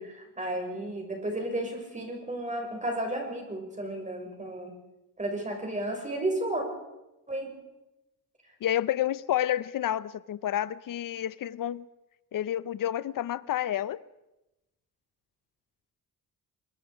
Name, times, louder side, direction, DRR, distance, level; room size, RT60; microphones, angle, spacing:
voice 1, 0.0-4.7 5.2-6.6 7.3-7.5, right 1 dB, 20° right, 6.2 m, -33 dB
voice 2, 8.6-11.9 12.3-14.0, left 11 dB, 70° left, 0.7 m, -29 dB
25.5 x 23.0 x 5.1 m
cardioid pair, 110°, 34 cm